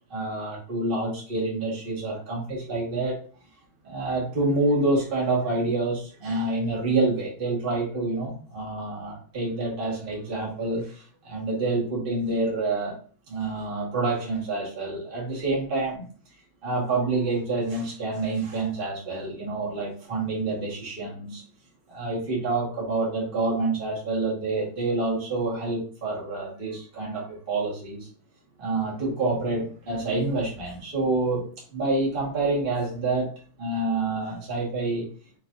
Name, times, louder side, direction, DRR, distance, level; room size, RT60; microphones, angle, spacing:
voice 1, 0.1-3.2 3.8-13.0 13.3-16.0 16.6-21.4 21.9-28.1 28.6-31.4 31.7-33.3 33.6-35.1, right 2 dB, 25° right, -4 dB, 1.4 m, -27 dB
6.2 x 3.1 x 2.6 m, 0.41 s
omnidirectional pair, 3.4 m